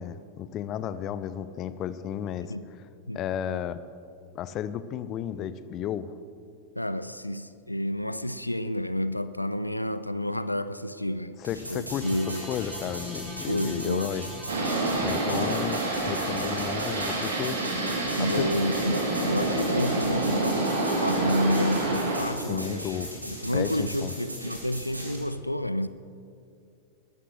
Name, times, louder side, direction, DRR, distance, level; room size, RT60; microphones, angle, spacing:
voice 1, 0.0-2.5 3.1-3.8 4.3-6.1 11.4-14.3 15.0-17.6 18.2-18.5 22.5-23.1 23.5-24.1, left 10 dB, 35° left, 0.5 m, -33 dB
voice 2, 6.8-11.4 11.7-12.4 13.5-14.2 15.3-15.6 18.2-23.0 23.2-25.9, left 1 dB, 85° left, 0.4 m, -30 dB
sound 1, 11.4-25.2, equal, 85° right, 2.9 m, -39 dB
sound 2, 12.0-22.0, right 1 dB, 15° right, 2.0 m, -44 dB
sound 3, 14.5-22.2, right 2 dB, 65° right, 2.8 m, -28 dB
20.5 x 12.5 x 3.2 m
figure-of-eight pair, 90°, 0 cm